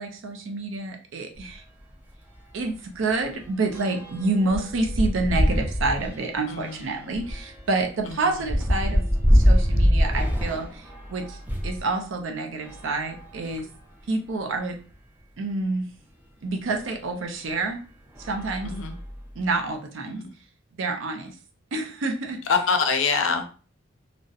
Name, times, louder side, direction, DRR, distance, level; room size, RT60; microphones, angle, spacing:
voice 1, 0.0-1.6 2.5-9.0 9.3-11.4 11.6-13.7 14.1-14.8 15.4-15.9 16.4-17.8 18.2-18.7 19.4-20.2 20.8-21.3 21.7-22.4, right 3 dB, 70° right, 5 dB, 0.5 m, -28 dB
sound 1, 1.3-1.5 1.9-2.0 2.3-11.8 12.5-13.9 14.6-14.7 14.9-15.0 16.7-16.9 17.5-17.7 18.1-19.4, equal, 10° right, 0.4 m, -25 dB
voice 2, 6.5-7.1 8.1-8.2 18.6-19.0 20.2-20.3 22.5-23.5, left 5 dB, 75° left, 7 dB, 0.4 m, -25 dB
2.7 x 2.0 x 2.3 m, 0.39 s
head